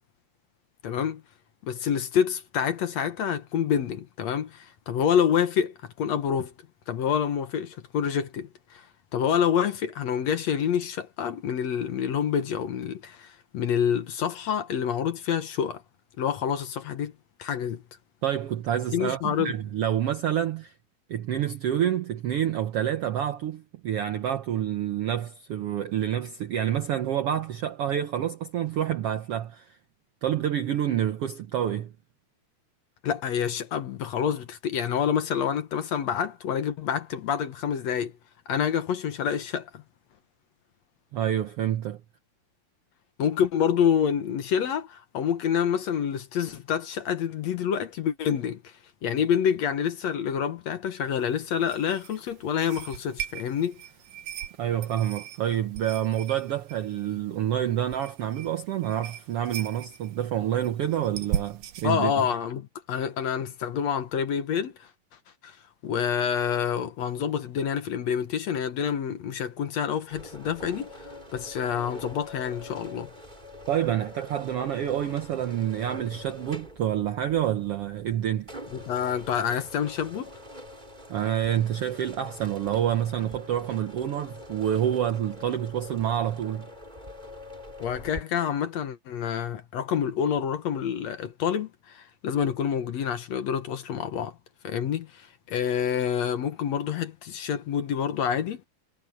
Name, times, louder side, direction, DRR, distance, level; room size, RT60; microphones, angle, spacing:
voice 1, 0.8-1.2 1.6-6.5 6.9-8.8 9.1-15.8 16.2-17.1 17.4-17.8 18.9-19.5 33.0-38.1 38.5-39.8 43.2-48.7 49.0-53.8 61.8-64.7 65.4-65.6 65.8-70.9 71.3-73.1 78.7-80.3 87.8-94.3 94.6-98.6, left 8 dB, 60° left, 2.2 m, -27 dB
voice 2, 18.2-20.7 21.1-29.8 30.2-31.9 41.1-42.0 54.6-62.3 73.7-78.5 81.1-86.7, right 10 dB, 70° right, 1.4 m, -28 dB
sound 1, 51.1-61.9, right 10 dB, 85° right, 2.8 m, -39 dB
sound 2, 70.1-88.2, left 1 dB, 15° right, 5.0 m, -44 dB
omnidirectional pair, 3.8 m